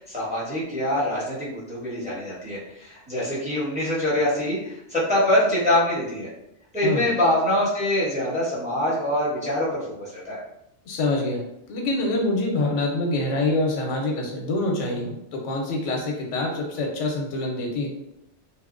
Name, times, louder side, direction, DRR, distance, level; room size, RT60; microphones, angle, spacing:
voice 1, 0.0-6.3 6.7-10.4, left 1 dB, 5° right, -7 dB, 0.7 m, -24 dB
voice 2, 10.8-11.4 11.7-17.9, left 2 dB, 85° left, 1 dB, 0.9 m, -25 dB
2.7 x 2.0 x 2.4 m, 0.81 s
omnidirectional pair, 1.2 m